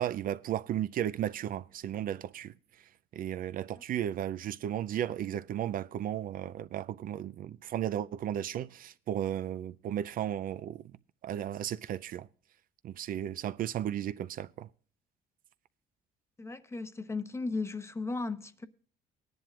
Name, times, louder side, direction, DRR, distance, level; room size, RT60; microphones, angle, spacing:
voice 1, 0.0-2.5 3.1-10.8 11.2-12.3 12.8-14.7, right 11 dB, 55° right, 0.5 m, -34 dB
voice 2, 16.4-18.7, left 3 dB, 15° left, 0.8 m, -36 dB
19.0 x 10.5 x 2.4 m
cardioid pair, 110°, 17 cm